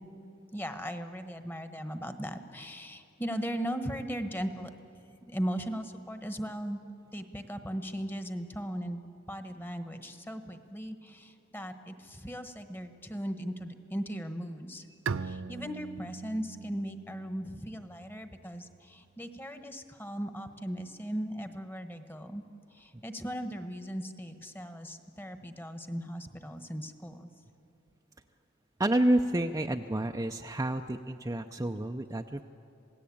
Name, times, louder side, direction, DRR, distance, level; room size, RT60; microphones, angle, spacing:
voice 1, 0.5-4.7 5.3-6.8 7.1-9.0 9.3-14.9 15.2-22.4 22.7-27.3, equal, 10° left, 8 dB, 1.2 m, -38 dB
Bowed string instrument, 15.1-18.6, right 5 dB, 75° right, 0.6 m, -40 dB
voice 2, 28.8-32.5, right 1 dB, 15° right, 4 dB, 0.5 m, -29 dB
27.0 x 18.0 x 8.6 m, 2.6 s
head